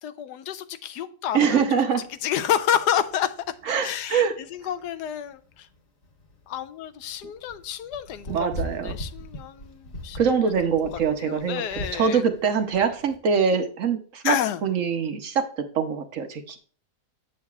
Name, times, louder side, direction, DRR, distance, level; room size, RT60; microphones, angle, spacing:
voice 1, 0.0-1.6 2.2-3.3 3.8-5.7 6.5-8.5 8.8-10.2 11.2-12.2 14.2-14.6, left 10 dB, 85° left, 11 dB, 1.2 m, -29 dB
voice 2, 1.3-2.0 3.7-4.4 8.3-9.0 10.1-14.4 14.6-16.6, right 6 dB, 60° right, 7 dB, 1.0 m, -24 dB
sound 1, 1.9-13.2, left 1 dB, 40° left, 1.5 m, -41 dB
8.5 x 7.3 x 2.3 m, 0.42 s
omnidirectional pair, 1.7 m